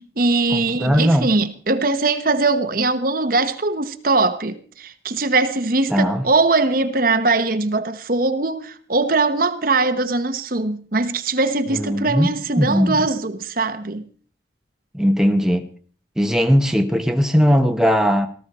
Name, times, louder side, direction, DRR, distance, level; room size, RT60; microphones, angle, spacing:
voice 1, 0.0-14.1, right 3 dB, 45° right, 1.1 m, -21 dB
voice 2, 0.5-1.3 5.9-6.3 11.7-12.3 12.6-13.0 14.9-15.6 16.2-18.3, equal, 5° right, 1.1 m, -18 dB
18.5 x 14.5 x 4.3 m
head